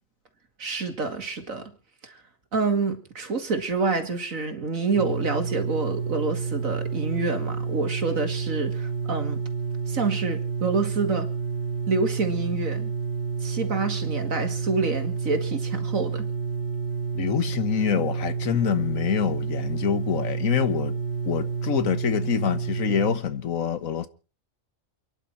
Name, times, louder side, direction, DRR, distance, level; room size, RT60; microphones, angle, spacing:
voice 1, 0.6-1.6 2.0-2.2 2.5-9.4 9.9-11.3 11.9-12.9 13.4-16.3, right 4 dB, 80° right, 2.7 m, -27 dB
sound 1, 4.9-23.2, right 6 dB, 60° left, 2.7 m, -29 dB
voice 2, 17.1-20.9 21.2-24.1, left 8 dB, 85° left, 1.6 m, -26 dB
29.0 x 11.0 x 4.5 m
omnidirectional pair, 1.4 m